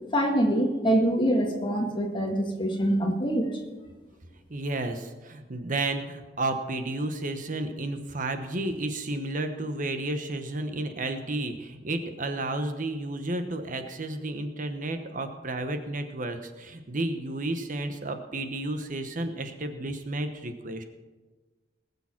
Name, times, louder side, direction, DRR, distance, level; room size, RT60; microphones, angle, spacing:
voice 1, 0.1-3.5, right 1 dB, 30° left, 2 dB, 1.8 m, -24 dB
voice 2, 4.5-20.8, right 2 dB, 45° right, 7 dB, 1.1 m, -32 dB
20.0 x 6.9 x 5.9 m, 1.2 s
head